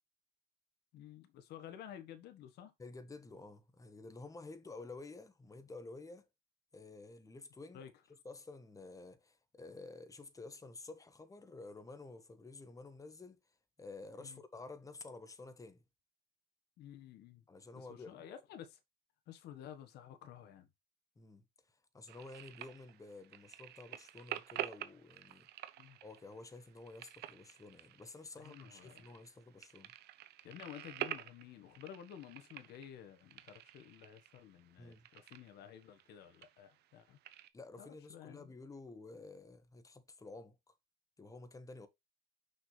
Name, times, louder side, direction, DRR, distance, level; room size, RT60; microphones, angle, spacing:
voice 1, 0.9-2.7 7.7-7.9 14.2-14.4 16.8-17.4 17.7-18.8 19.3-20.7 25.8-26.0 28.4-29.1 30.4-37.2 37.8-38.5, left 10 dB, 75° left, 1.5 m, -52 dB
voice 2, 2.8-6.3 6.7-7.8 8.2-13.4 13.8-15.8 17.5-18.2 21.2-21.4 21.9-25.5 26.0-29.9 34.8-35.1 37.5-40.7 41.2-41.9, left 3 dB, 20° left, 1.4 m, -51 dB
sound 1, 22.1-37.5, right 13 dB, 75° right, 0.9 m, -49 dB
6.1 x 5.9 x 3.3 m
cardioid pair, 110°, 17 cm